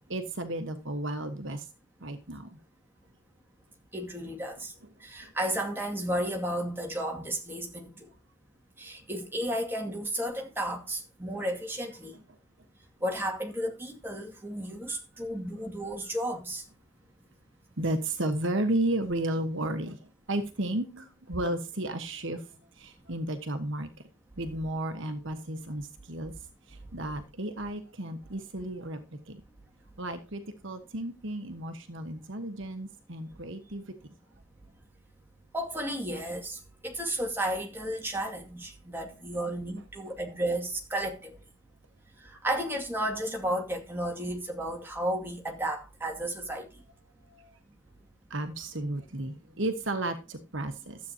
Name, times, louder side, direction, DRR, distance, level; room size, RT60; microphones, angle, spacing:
voice 1, 0.1-1.6 2.0-2.5 14.9-15.0 17.8-20.0 20.3-22.4 22.8-23.9 24.4-26.3 26.7-29.0 29.3-29.4 30.0-33.8 47.3-47.5 48.3-51.0, right 1 dB, 55° right, 1.3 m, -33 dB
voice 2, 3.9-4.7 5.0-8.0 8.8-12.1 13.0-16.6 35.5-36.6 36.8-41.3 42.4-46.7, right 1 dB, 10° right, 2.3 m, -33 dB
13.0 x 8.5 x 2.9 m
head